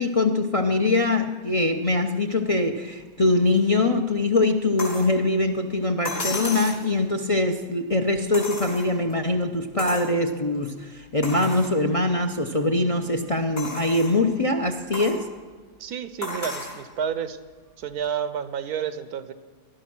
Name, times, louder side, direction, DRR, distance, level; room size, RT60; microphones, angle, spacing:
voice 1, 0.0-15.3, left 2 dB, 35° left, 7 dB, 0.6 m, -23 dB
sound 1, 4.8-5.1 6.1-6.8 8.3-9.1 9.8-10.1 10.6-10.7 11.2-11.7 12.3-12.4 13.6-14.2 14.9-15.2 16.2-16.8 18.0-18.1, left 2 dB, 65° left, 4.5 m, -33 dB
voice 2, 15.8-17.4 17.8-19.3, right 8 dB, 85° right, 12 dB, 1.4 m, -30 dB
19.0 x 12.0 x 6.1 m, 1.4 s
omnidirectional pair, 1.6 m